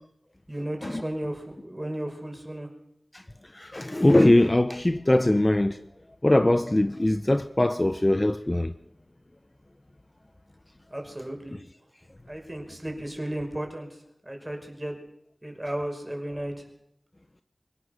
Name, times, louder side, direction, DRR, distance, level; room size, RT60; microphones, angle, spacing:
voice 1, 0.5-2.7 10.9-11.6 12.3-13.9 14.3-15.0 15.4-16.5, right 1 dB, 20° right, 5.8 m, -34 dB
voice 2, 3.6-5.8 6.2-8.7, left 1 dB, 30° left, 0.8 m, -21 dB
25.5 x 16.5 x 6.7 m
wide cardioid pair, 50°, 0 cm